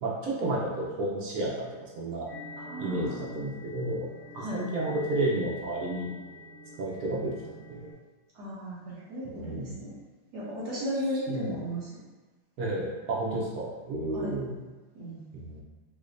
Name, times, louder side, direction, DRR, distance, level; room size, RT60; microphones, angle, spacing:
voice 1, 0.0-2.3 2.8-4.1 4.5-6.1 6.8-7.3 7.7-7.9 9.2-9.8 11.3-11.5 12.6-14.5 15.3-15.6, right 2 dB, 85° right, -5 dB, 0.8 m, -31 dB
sound 1, 2.3-7.9, left 2 dB, 70° left, 1.5 m, -46 dB
voice 2, 2.6-3.2 4.3-4.6 8.3-9.9 10.3-11.9 14.1-14.3 14.9-15.2, equal, 60° right, -8 dB, 1.4 m, -35 dB
4.8 x 2.2 x 2.5 m, 1.3 s
omnidirectional pair, 2.3 m